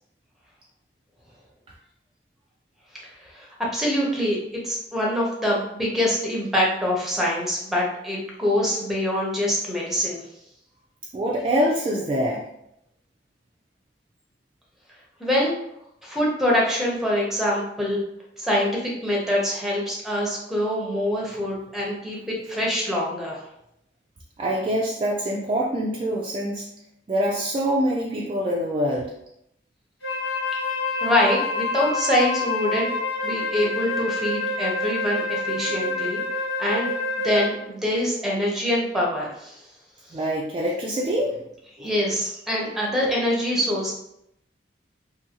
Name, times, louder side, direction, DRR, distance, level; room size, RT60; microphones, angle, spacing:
voice 1, 3.2-10.2 15.2-15.5 16.0-18.0 18.4-18.7 19.0-23.4 31.0-32.9 33.2-36.2 36.6-36.9 37.2-39.6 41.8-43.9, left 1 dB, ahead, -3 dB, 0.7 m, -24 dB
voice 2, 11.1-12.4 24.4-26.6 27.1-29.1 40.1-41.4 41.8-41.9, equal, 30° right, -3 dB, 0.3 m, -25 dB
Wind instrument woodwind instrument, 30.0-37.6, left 3 dB, 85° left, 1.1 m, -27 dB
2.7 x 2.6 x 2.8 m, 0.77 s
head